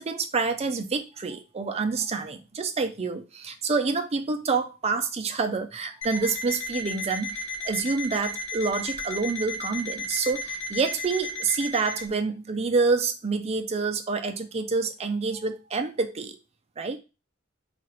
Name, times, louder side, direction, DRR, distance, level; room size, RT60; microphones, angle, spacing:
voice 1, 0.0-16.4 16.8-17.0, right 4 dB, 30° right, 0.5 m, -27 dB
Alarm, 6.0-12.1, left 2 dB, 80° left, 0.9 m, -34 dB
3.0 x 2.5 x 4.2 m
head